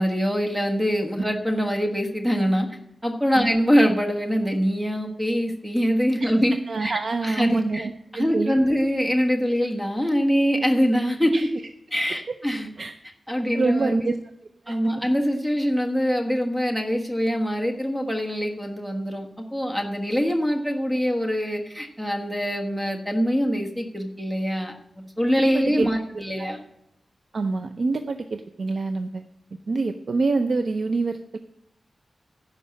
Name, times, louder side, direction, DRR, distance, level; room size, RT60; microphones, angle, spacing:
voice 1, 0.0-2.7 3.0-6.5 6.8-7.9 8.1-11.5 11.9-12.7 13.3-14.1 14.7-24.7 25.2-26.6, equal, 10° right, 2 dB, 1.4 m, -24 dB
voice 2, 6.7-8.6 11.3-11.5 12.3-12.4 12.8-12.9 13.5-14.2 14.7-14.9 25.5-25.9 26.3-26.6 27.3-29.2 29.7-31.4, right 3 dB, 60° right, 7 dB, 0.6 m, -26 dB
11.0 x 5.5 x 8.7 m, 0.79 s
wide cardioid pair, 110°, 0 cm